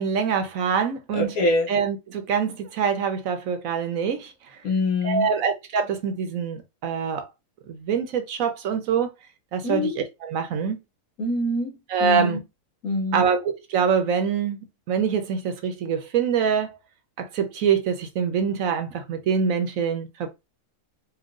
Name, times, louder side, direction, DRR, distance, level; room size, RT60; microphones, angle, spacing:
voice 1, 0.0-1.3 1.7-4.6 5.0-7.2 7.7-9.1 9.5-10.8 11.9-12.4 13.1-14.6 14.9-16.8 17.2-20.3, right 6 dB, 60° right, 1.1 m, -25 dB
voice 2, 1.1-1.7 4.6-5.3 9.6-10.0 11.2-11.7 12.0-12.4 12.8-13.3, left 2 dB, 60° left, 1.6 m, -24 dB
4.5 x 2.3 x 3.7 m
omnidirectional pair, 1.7 m